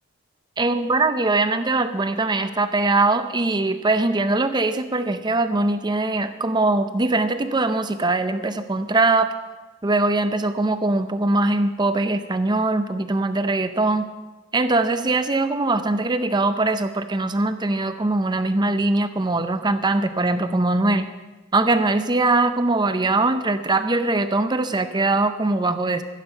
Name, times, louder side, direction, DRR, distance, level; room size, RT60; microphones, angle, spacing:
voice 1, 0.6-9.3 9.8-14.1 14.5-21.1 21.5-26.0, right 2 dB, 20° right, 10 dB, 0.6 m, -21 dB
12.0 x 11.5 x 5.5 m, 1.2 s
head